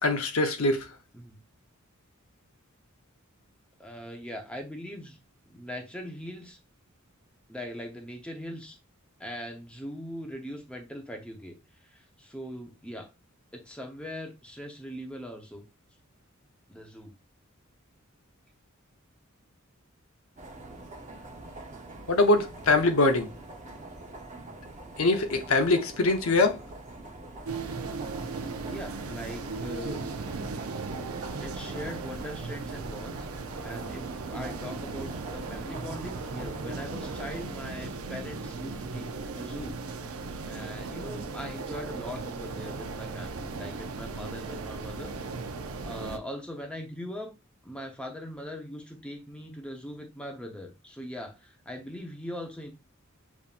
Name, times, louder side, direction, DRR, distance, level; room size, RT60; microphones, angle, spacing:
voice 1, 0.0-0.9 22.1-23.3 25.0-26.6, left 2 dB, 75° left, 0.8 m, -23 dB
voice 2, 3.8-5.2 5.5-6.6 7.5-8.8 9.2-11.5 11.8-13.1 13.5-15.6 16.7-17.1 28.6-30.0 31.4-33.3 33.6-39.8 40.5-45.1 45.8-47.3 47.6-52.7, equal, 5° left, 0.9 m, -40 dB
sound 1, 20.4-37.6, right 2 dB, 35° right, 0.8 m, -45 dB
sound 2, 27.4-46.2, right 4 dB, 85° right, 0.6 m, -37 dB
7.1 x 2.7 x 2.5 m
head